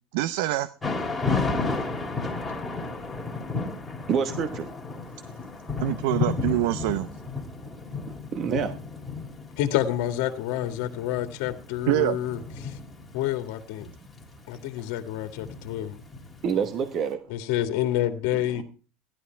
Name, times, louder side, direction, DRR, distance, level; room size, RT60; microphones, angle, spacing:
voice 1, 0.1-0.7 5.8-7.1 11.9-12.2, right 15 dB, 70° right, 0.7 m, -25 dB
Thunder / Rain, 0.8-16.8, left 4 dB, 5° left, 2.2 m, -33 dB
voice 2, 4.1-4.7 8.3-8.7 16.4-17.2 18.6-18.7, right 7 dB, 30° right, 1.1 m, -26 dB
voice 3, 9.6-12.8 13.1-13.9 14.5-15.9 17.3-18.6, left 12 dB, 60° left, 1.8 m, -28 dB
15.5 x 11.5 x 4.5 m
cardioid pair, 170°, 0 cm